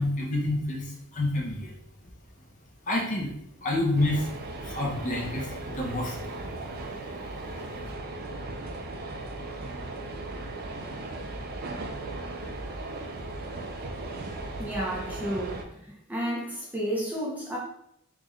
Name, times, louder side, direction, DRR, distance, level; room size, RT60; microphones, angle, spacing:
voice 1, 0.0-1.7 2.0-2.1 2.9-3.3 3.6-4.3 4.6-6.4 6.8-6.9, left 1 dB, 35° left, -2 dB, 0.7 m, -28 dB
sound 1, 4.0-15.6, right 2 dB, 45° right, 0.4 m, -37 dB
voice 2, 14.6-15.7 16.1-17.6, equal, 5° right, -4 dB, 0.7 m, -31 dB
3.6 x 2.4 x 3.1 m, 0.74 s
head